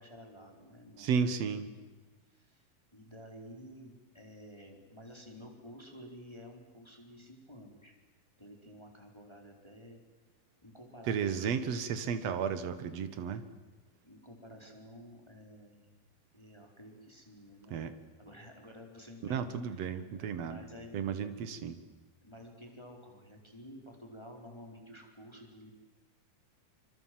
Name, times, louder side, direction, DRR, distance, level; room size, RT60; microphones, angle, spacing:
voice 1, 0.0-1.9 2.3-2.7 2.9-7.9 8.4-10.0 10.6-11.9 14.0-15.9 16.3-21.0 22.2-25.7, equal, 5° left, 2 dB, 3.8 m, -52 dB
voice 2, 1.0-1.7 11.1-13.4 17.7-17.9 19.3-20.6 20.9-21.8, right 6 dB, 50° right, 11 dB, 2.3 m, -33 dB
26.5 x 25.0 x 7.8 m, 1.3 s
omnidirectional pair, 4.4 m